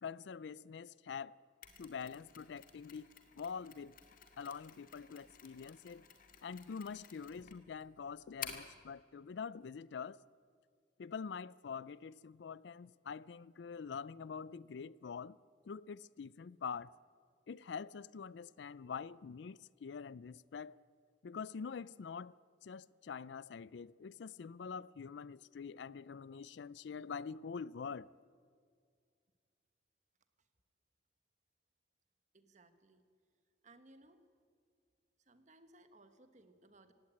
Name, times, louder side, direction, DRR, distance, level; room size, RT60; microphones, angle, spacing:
voice 1, 0.0-1.3 1.8-4.0 4.4-6.1 6.4-10.2 11.0-15.4 15.6-16.9 17.5-20.7 21.2-28.1, left 6 dB, 70° left, 0.4 m, -45 dB
Mechanisms, 1.6-8.8, left 8 dB, 50° left, 2.1 m, -53 dB
voice 2, 32.3-33.0 33.6-34.2 35.3-36.9, right 2 dB, 40° right, 1.5 m, -62 dB
17.0 x 17.0 x 9.1 m
head